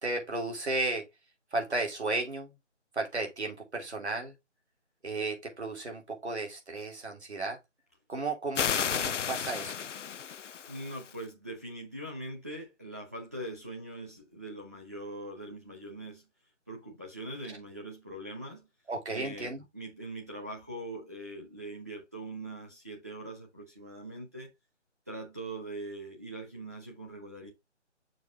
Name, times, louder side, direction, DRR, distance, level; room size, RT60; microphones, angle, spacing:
voice 1, 0.0-1.1 1.5-2.5 2.9-4.3 5.0-7.6 8.1-9.7 18.9-19.6, right 2 dB, 65° right, 2.8 m, -34 dB
sound 1, 8.5-11.1, left 8 dB, 80° left, 0.5 m, -33 dB
voice 2, 10.7-16.2 16.7-18.7 19.1-24.5 25.1-27.5, right 1 dB, 15° right, 0.8 m, -42 dB
6.4 x 3.4 x 4.8 m
figure-of-eight pair, 165°, 36 cm